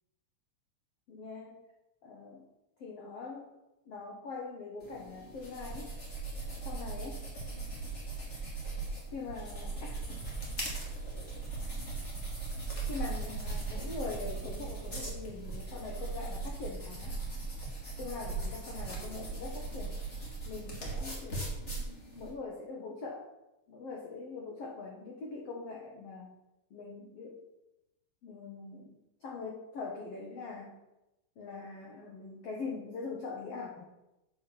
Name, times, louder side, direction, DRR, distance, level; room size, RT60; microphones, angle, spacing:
voice 1, 1.1-1.6 2.0-2.4 2.8-3.5 3.9-5.9 6.6-7.2 9.1-10.2 12.9-17.1 18.0-20.0 20.4-21.4 22.2-23.3 23.7-26.3 26.7-27.4 28.2-28.9 29.2-30.8 31.4-33.8, left 4 dB, 90° left, -1 dB, 1.3 m, -42 dB
sound 1, 4.8-22.3, right 3 dB, 20° left, 2.0 m, -39 dB
8.4 x 6.6 x 7.0 m, 0.96 s
omnidirectional pair, 4.8 m